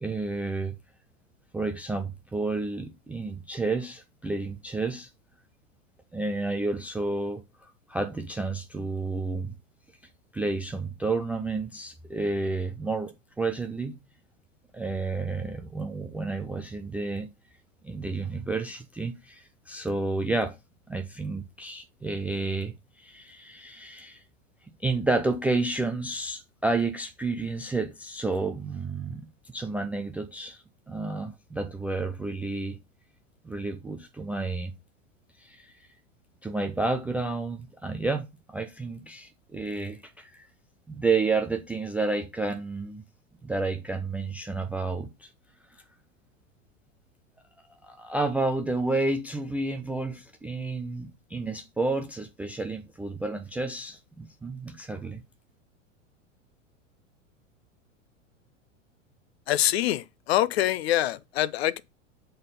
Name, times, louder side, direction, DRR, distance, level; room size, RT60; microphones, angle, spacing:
voice 1, 0.0-0.8 1.5-5.1 6.1-9.5 10.3-13.9 14.7-17.3 17.8-20.6 20.9-24.2 24.8-32.8 33.4-34.7 35.4-35.7 36.4-40.5 40.9-43.0 43.4-45.3 47.8-55.2, right 3 dB, 5° right, 0.3 m, -30 dB
voice 2, 59.5-61.8, left 13 dB, 55° left, 0.6 m, -25 dB
7.9 x 3.9 x 5.3 m
figure-of-eight pair, 90°, 38 cm